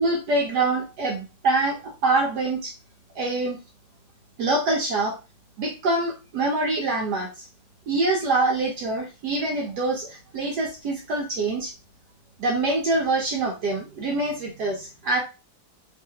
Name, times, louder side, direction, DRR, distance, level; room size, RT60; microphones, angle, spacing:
voice 1, 0.0-2.7 3.2-3.6 4.4-5.1 5.6-7.4 7.9-11.7 12.4-15.2, right 2 dB, 70° right, 0 dB, 1.1 m, -25 dB
3.3 x 2.4 x 2.8 m, 0.30 s
omnidirectional pair, 2.1 m